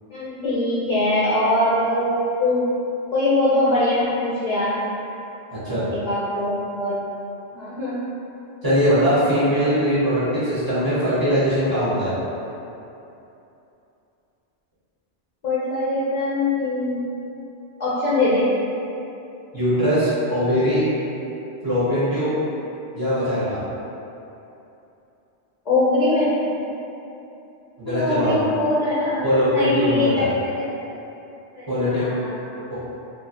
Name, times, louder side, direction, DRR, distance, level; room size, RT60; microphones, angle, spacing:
voice 1, 0.1-2.7 3.1-4.8 5.9-7.0 7.5-8.0 15.4-17.0 17.8-18.5 25.7-26.3 27.8-30.6 31.6-32.4, left 2 dB, 55° left, -11 dB, 0.5 m, -22 dB
voice 2, 5.5-5.9 8.6-12.1 19.5-20.9 21.6-22.3 22.9-23.6 27.8-28.4 29.2-30.3 31.7-32.1 32.7-32.8, equal, 25° right, -12 dB, 0.6 m, -21 dB
3.0 x 2.2 x 2.7 m, 2.9 s
omnidirectional pair, 1.2 m